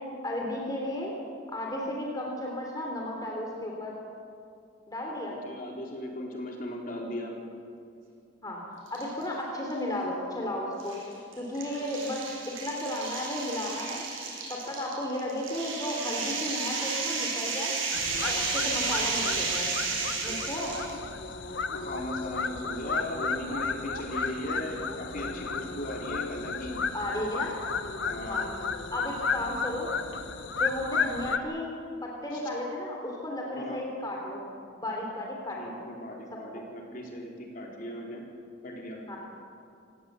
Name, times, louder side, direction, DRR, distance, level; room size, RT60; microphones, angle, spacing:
voice 1, 0.2-1.1 1.5-4.0 4.9-5.4 8.4-11.0 11.4-12.2 12.6-14.0 14.5-17.7 18.2-19.7 20.2-20.7 26.9-27.6 28.3-28.5 28.9-29.9 30.6-31.7 32.0-34.4 34.8-35.8 36.5-36.6 39.1-39.2, left 1 dB, 20° left, -1 dB, 3.2 m, -34 dB
voice 2, 5.3-7.3 21.7-26.7 28.0-28.5 32.3-32.4 33.5-33.8 35.6-38.2 38.6-39.0, left 1 dB, 45° left, -1 dB, 4.1 m, -37 dB
sound 1, 8.9-9.3 9.7-9.8 10.8-20.9, right 4 dB, 90° right, 7.1 m, -32 dB
sound 2, 17.9-31.4, left 5 dB, 70° left, 1.2 m, -33 dB
27.0 x 17.5 x 8.2 m, 2.4 s
head